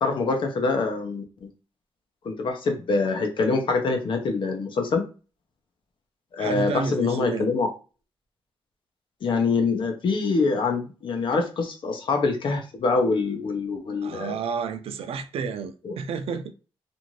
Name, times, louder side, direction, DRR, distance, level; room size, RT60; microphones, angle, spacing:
voice 1, 0.0-1.2 2.2-5.0 6.3-7.7 9.2-14.4 15.8-16.0, left 4 dB, 60° left, 0.7 m, -25 dB
voice 2, 6.4-7.5 14.0-16.5, right 5 dB, 80° right, 0.4 m, -31 dB
2.6 x 2.5 x 3.0 m
wide cardioid pair, 150°, 10 cm